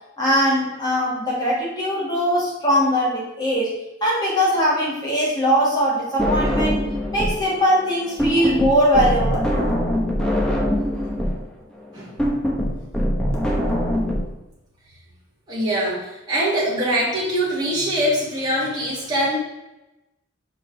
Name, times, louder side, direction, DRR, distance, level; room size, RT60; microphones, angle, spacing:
voice 1, 0.2-3.7 4.0-6.8 7.1-9.8, equal, 20° left, -6 dB, 2.6 m, -21 dB
sound 1, 6.2-7.5 7.7-14.2, equal, 5° left, 1.0 m, -22 dB
voice 2, 15.5-19.4, right 1 dB, 20° right, -8 dB, 2.7 m, -23 dB
6.1 x 5.0 x 5.2 m, 0.95 s
head